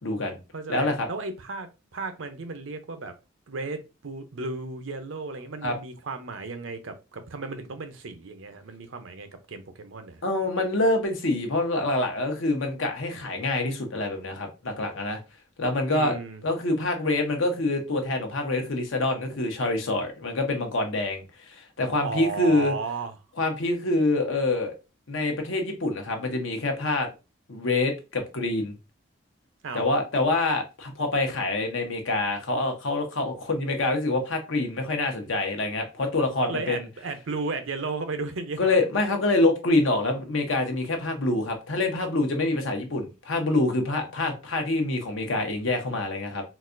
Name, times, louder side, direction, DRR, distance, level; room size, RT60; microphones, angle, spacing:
voice 1, 0.0-0.4 0.7-1.1 5.6-5.8 10.2-15.2 15.6-16.2 16.4-22.7 23.4-24.7 25.1-27.1 27.5-28.7 29.7-36.9 38.6-46.4, left 2 dB, 80° left, 0.9 m, -26 dB
voice 2, 0.5-3.1 3.5-10.2 15.9-16.4 22.0-23.1 29.6-29.8 36.5-38.8, right 3 dB, 80° right, 0.6 m, -34 dB
3.9 x 2.3 x 2.5 m
head